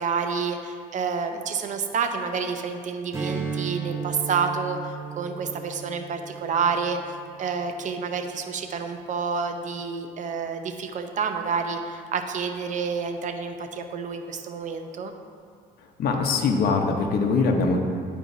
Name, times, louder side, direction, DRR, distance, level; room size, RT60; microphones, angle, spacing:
voice 1, 0.0-7.0 7.4-15.1, right 5 dB, 50° right, 6 dB, 0.7 m, -29 dB
Strum, 3.1-7.9, right 6 dB, 15° right, 1.0 m, -35 dB
voice 2, 16.0-17.8, left 4 dB, 65° left, 2 dB, 1.0 m, -22 dB
11.5 x 4.5 x 2.7 m, 2.3 s
cardioid pair, 110°, 17 cm